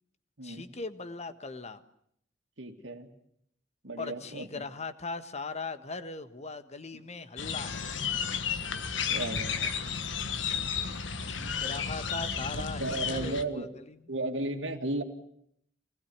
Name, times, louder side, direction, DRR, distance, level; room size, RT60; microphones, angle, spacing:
voice 1, 0.4-1.8 4.0-7.8 10.8-14.0, left 3 dB, 35° left, 10 dB, 1.5 m, -39 dB
voice 2, 2.6-3.1 3.8-4.7 6.9-7.0 9.1-9.7 12.5-13.7 14.1-15.0, right 2 dB, 70° right, 2 dB, 2.5 m, -35 dB
sound 1, 7.4-13.4, left 6 dB, 75° left, 1.5 m, -33 dB
25.5 x 20.0 x 9.5 m, 0.70 s
head